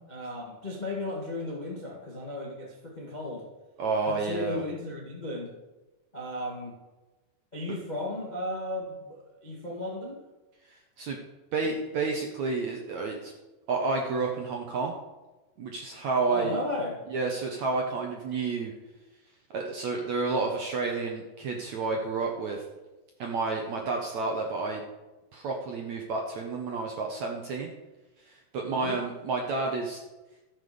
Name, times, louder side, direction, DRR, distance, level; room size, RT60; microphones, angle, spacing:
voice 1, 0.0-3.4 4.0-5.5 6.1-6.8 7.5-10.2 11.6-11.8 16.3-17.0 28.6-29.0, left 1 dB, 75° left, -2 dB, 0.4 m, -35 dB
voice 2, 3.8-4.6 10.6-11.2 11.5-13.3 13.7-14.9 15.6-16.6 17.1-18.7 19.5-22.6 23.2-24.8 25.3-27.7 28.2-30.0, right 3 dB, 70° right, 1 dB, 1.7 m, -30 dB
13.5 x 7.1 x 6.9 m, 1.1 s
omnidirectional pair, 5.0 m